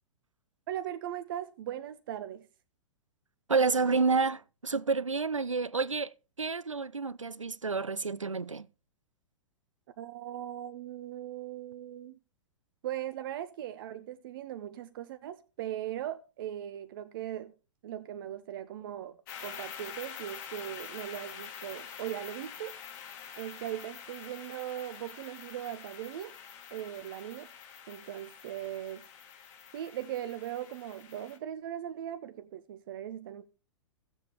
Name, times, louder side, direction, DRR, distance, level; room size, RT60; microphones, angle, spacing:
voice 1, 0.7-2.5 10.0-12.2 12.8-17.5 17.8-22.7 23.4-26.3 26.7-27.5 27.9-29.0 29.7-33.5, right 11 dB, 45° right, 0.6 m, -39 dB
voice 2, 3.5-6.1 6.4-8.7, right 4 dB, 85° right, 0.5 m, -29 dB
sound 1, 19.3-31.4, left 8 dB, 35° left, 1.6 m, -46 dB
16.0 x 7.2 x 2.9 m
figure-of-eight pair, 110°, 16 cm